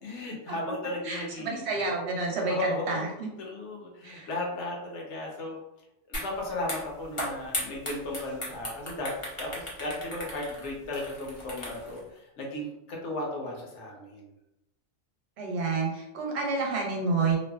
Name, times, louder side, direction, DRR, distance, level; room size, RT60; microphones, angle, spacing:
voice 1, 0.0-1.6 2.5-3.1 3.4-5.6 6.1-9.1 9.4-14.3, left 2 dB, 75° left, -1 dB, 1.0 m, -35 dB
voice 2, 1.1-2.5 2.9-3.3 4.0-4.3 15.4-17.4, right 4 dB, 65° right, 0 dB, 0.9 m, -29 dB
sound 1, 6.1-6.3 6.6-12.0, left 1 dB, 40° left, 0.5 m, -36 dB
2.6 x 2.2 x 2.2 m, 0.87 s
omnidirectional pair, 1.3 m